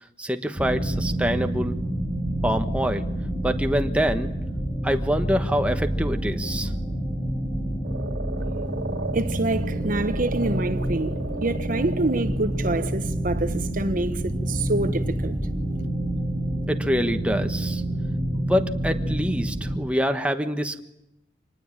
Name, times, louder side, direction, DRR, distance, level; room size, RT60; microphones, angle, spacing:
voice 1, 0.2-1.7 2.4-3.0 3.4-4.3 4.8-6.7 16.7-17.8 18.3-20.8, equal, 5° right, 1.3 m, -25 dB
sound 1, 0.6-19.8, right 1 dB, 15° left, 5.4 m, -28 dB
Frog, 7.8-12.9, right 3 dB, 90° right, 2.3 m, -36 dB
voice 2, 9.1-15.4, right 2 dB, 50° right, 1.1 m, -27 dB
26.0 x 19.5 x 9.0 m
head